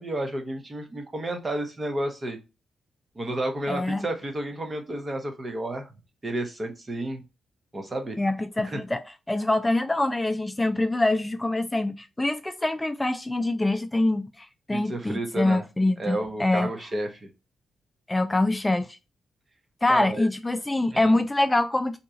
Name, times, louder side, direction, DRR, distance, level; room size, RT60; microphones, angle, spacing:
voice 1, 0.0-2.4 3.1-5.9 6.2-7.2 7.7-8.2 8.7-8.8 14.7-15.6 16.0-17.3 19.9-20.3 20.9-21.2, right 1 dB, 35° right, 0.9 m, -31 dB
voice 2, 3.7-4.0 8.2-16.7 18.1-19.0 19.8-22.0, left 2 dB, 20° left, 0.3 m, -25 dB
2.8 x 2.3 x 2.7 m
hypercardioid pair, 40°, 0 cm